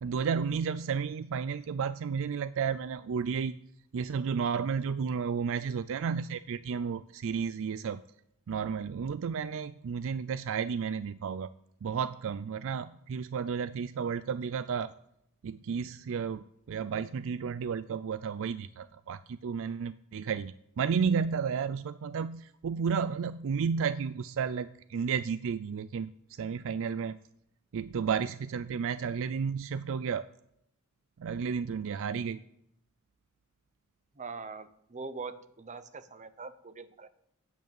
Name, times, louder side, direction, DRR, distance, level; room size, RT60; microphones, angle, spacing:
voice 1, 0.0-3.5 3.9-8.0 8.5-11.5 11.8-14.9 15.4-27.2 27.7-30.3 31.2-32.4, right 6 dB, 65° right, 15 dB, 0.4 m, -32 dB
voice 2, 34.1-37.1, right 4 dB, 35° right, 12 dB, 0.8 m, -42 dB
9.2 x 8.1 x 8.8 m, 0.76 s
head